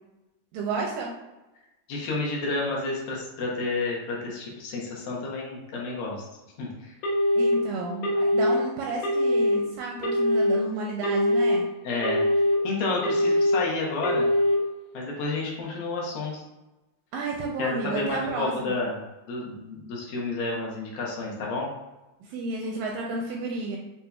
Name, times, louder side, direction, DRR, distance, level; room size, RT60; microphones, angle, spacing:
voice 1, 0.5-1.1 7.4-11.6 17.1-18.8 22.2-23.8, right 3 dB, 80° right, -1 dB, 2.0 m, -32 dB
voice 2, 1.9-6.2 6.6-6.9 11.8-12.2 12.6-14.3 14.9-16.4 17.6-18.9 19.3-21.7, left 3 dB, 75° left, -3 dB, 2.5 m, -30 dB
Telephone, 7.0-7.5 8.0-8.5 9.0-9.5 10.0-10.5 11.0-11.5 12.0-12.5 13.0-13.5 14.0-14.5, left 1 dB, 90° left, 2.9 m, -22 dB
6.9 x 2.7 x 2.3 m, 1.0 s
omnidirectional pair, 4.3 m